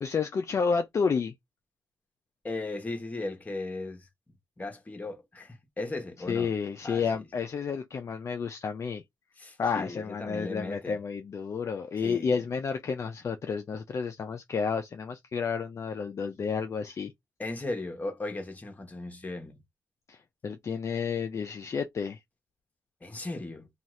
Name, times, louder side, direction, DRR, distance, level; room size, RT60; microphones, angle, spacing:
voice 1, 0.0-1.3 6.3-9.0 9.6-17.1 20.1-22.2, left 5 dB, 45° left, 0.4 m, -31 dB
voice 2, 2.4-4.1 4.6-6.5 6.8-7.0 9.4-11.0 12.0-12.3 17.4-19.6 23.0-23.7, left 2 dB, 25° left, 1.0 m, -37 dB
2.7 x 2.3 x 3.0 m
cardioid pair, 75°, 7 cm